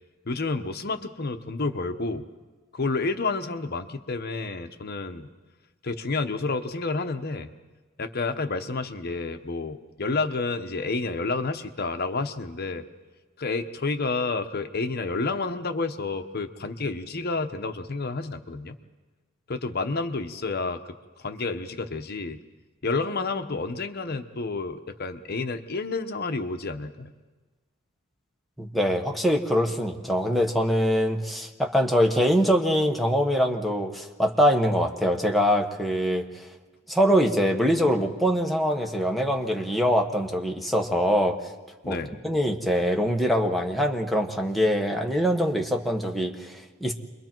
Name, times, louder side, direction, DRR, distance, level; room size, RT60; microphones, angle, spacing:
voice 1, 0.2-2.3 2.7-5.3 5.8-7.5 8.0-12.8 13.4-18.8 19.5-22.4 22.8-27.1 41.8-42.1, left 3 dB, 50° left, 8 dB, 1.0 m, -30 dB
voice 2, 28.6-36.5 36.9-41.4 41.9-42.0 42.2-46.9, equal, ahead, 2 dB, 1.3 m, -23 dB
28.5 x 22.5 x 4.6 m, 1.3 s
head